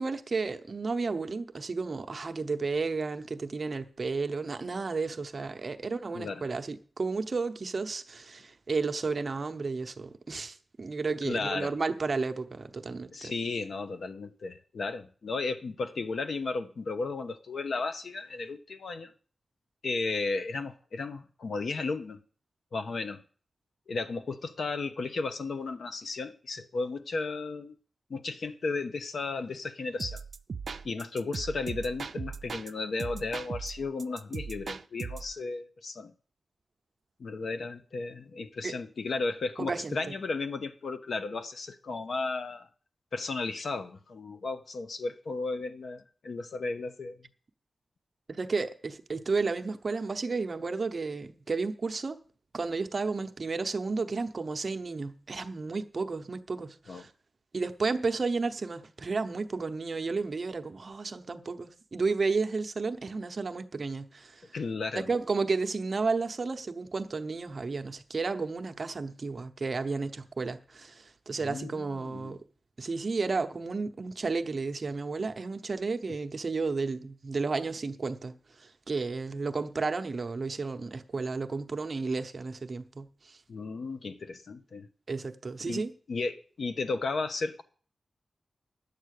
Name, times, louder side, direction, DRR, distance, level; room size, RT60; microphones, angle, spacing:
voice 1, 0.0-13.3 38.6-38.7 39.6-40.0 48.3-52.2 52.5-57.1 57.5-64.4 64.9-72.4 72.8-83.4 85.1-85.9, right 4 dB, 40° right, 0.8 m, -32 dB
voice 2, 6.1-6.4 11.2-11.7 13.1-19.1 19.8-22.2 22.7-23.2 23.9-27.8 28.1-30.2 30.8-36.1 37.2-42.7 43.1-47.2 56.9-57.0 64.5-65.1 71.4-72.4 83.5-84.9 85.7-87.6, left 3 dB, 65° left, 0.9 m, -34 dB
sound 1, 30.0-32.7 33.0-35.3, right 5 dB, 60° right, 0.5 m, -38 dB
10.5 x 8.3 x 6.5 m
wide cardioid pair, 140°, 0 cm